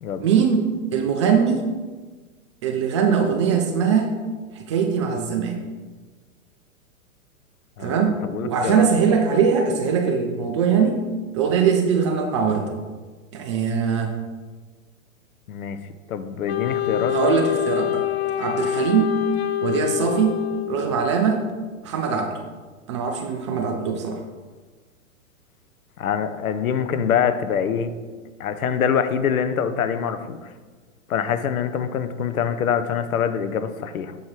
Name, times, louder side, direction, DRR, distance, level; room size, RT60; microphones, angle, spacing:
voice 1, 0.2-1.7 2.6-4.1 4.5-5.6 7.8-8.2 8.4-11.0 11.3-12.7 13.3-14.1 17.1-18.0 18.4-19.2 19.6-20.4 20.7-21.4 21.8-22.3 22.9-24.2, right 6 dB, 25° right, 4 dB, 0.4 m, -21 dB
voice 2, 7.8-8.9 15.5-15.8 16.1-17.4 26.0-27.9 28.4-30.4 31.1-34.2, left 7 dB, 75° left, 10 dB, 0.8 m, -24 dB
Wind instrument woodwind instrument, 16.5-21.1, left 14 dB, 50° left, 0.5 m, -26 dB
7.3 x 4.6 x 4.7 m, 1.4 s
hypercardioid pair, 130°, 42 cm